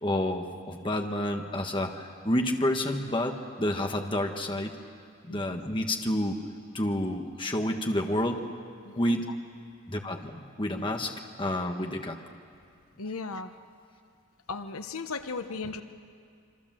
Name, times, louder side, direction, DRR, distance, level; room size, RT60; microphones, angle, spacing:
voice 1, 0.0-4.7 5.2-6.3 6.7-8.4 8.9-9.3 9.9-11.1 11.4-12.2, left 1 dB, 20° left, 3 dB, 1.5 m, -29 dB
voice 2, 5.3-5.7 8.8-9.2 13.0-13.5 14.5-15.8, left 4 dB, 80° left, 9 dB, 1.0 m, -36 dB
27.0 x 24.5 x 7.6 m, 2.3 s
head